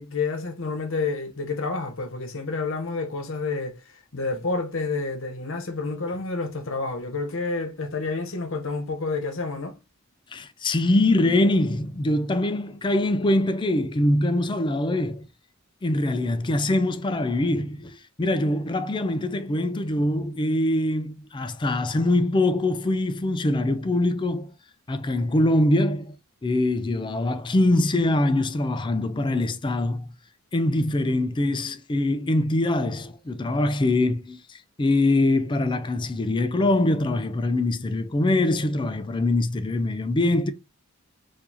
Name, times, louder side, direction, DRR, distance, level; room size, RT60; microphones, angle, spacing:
voice 1, 0.0-3.8 4.1-9.7, left 3 dB, 65° left, 0.9 m, -29 dB
voice 2, 10.3-15.3 15.8-24.5 24.9-26.1 26.4-30.1 30.5-40.5, left 1 dB, 20° left, 0.4 m, -23 dB
4.5 x 2.6 x 2.7 m
head